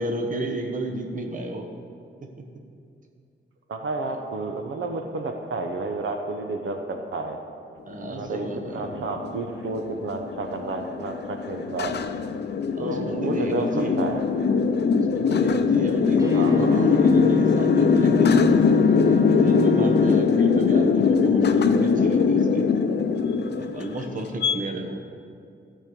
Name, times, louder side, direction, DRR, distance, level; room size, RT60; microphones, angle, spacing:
voice 1, 0.0-1.7 7.9-8.9 12.7-14.0 15.0-18.4 19.0-22.7 23.5-25.0, right 1 dB, 40° right, 4 dB, 1.0 m, -32 dB
voice 2, 3.7-7.4 8.1-12.2 12.8-14.2 16.1-16.9 24.5-24.6 24.9-25.0, right 3 dB, 80° right, 4 dB, 0.9 m, -31 dB
sound 1, 8.2-24.5, left 5 dB, 60° left, 0.5 m, -21 dB
sound 2, 16.2-20.1, equal, 15° right, 1.0 m, -29 dB
14.0 x 5.5 x 6.9 m, 2.4 s
wide cardioid pair, 175°, 20 cm